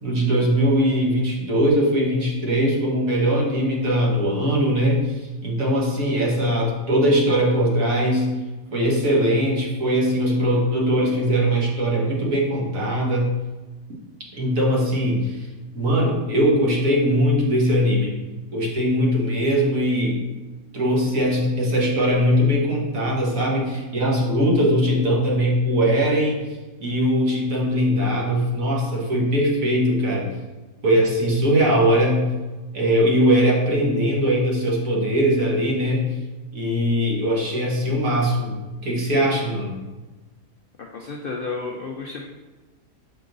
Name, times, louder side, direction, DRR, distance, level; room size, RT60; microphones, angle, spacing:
voice 1, 0.0-8.3 8.7-13.3 14.3-15.5 15.7-18.1 18.5-20.2 20.7-26.4 26.8-30.2 30.8-32.2 32.7-36.1 36.5-38.5 38.8-39.8, equal, 55° right, -3 dB, 1.7 m, -20 dB
voice 2, 40.8-42.3, left 4 dB, 85° left, 0 dB, 0.4 m, -32 dB
6.2 x 4.6 x 3.9 m, 1.2 s
omnidirectional pair, 1.7 m